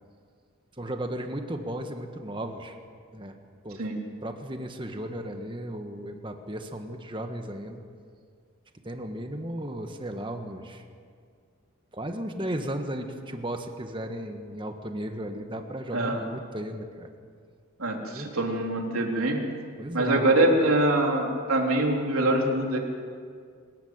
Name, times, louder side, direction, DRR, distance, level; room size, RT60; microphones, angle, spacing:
voice 1, 0.8-2.8 3.1-3.4 3.6-3.8 4.2-7.8 8.8-10.8 11.9-17.1 18.1-18.3 19.8-20.3, right 1 dB, 25° right, 5 dB, 1.5 m, -35 dB
voice 2, 17.8-19.4 19.9-22.8, right 1 dB, 85° right, 1 dB, 3.5 m, -24 dB
26.0 x 14.5 x 9.0 m, 2.1 s
head